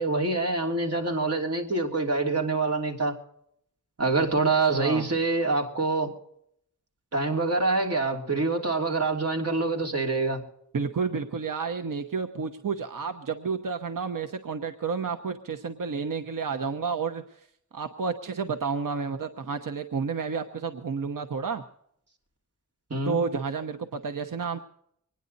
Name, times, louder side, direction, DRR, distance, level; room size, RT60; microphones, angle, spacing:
voice 1, 0.0-3.2 4.0-6.1 7.1-10.4 22.9-23.2, right 3 dB, 50° right, 1 dB, 3.0 m, -26 dB
voice 2, 4.6-5.1 10.7-17.2 17.7-21.6 23.0-24.6, right 5 dB, 90° right, 7 dB, 1.0 m, -30 dB
25.5 x 10.0 x 4.0 m, 0.71 s
wide cardioid pair, 100°, 31 cm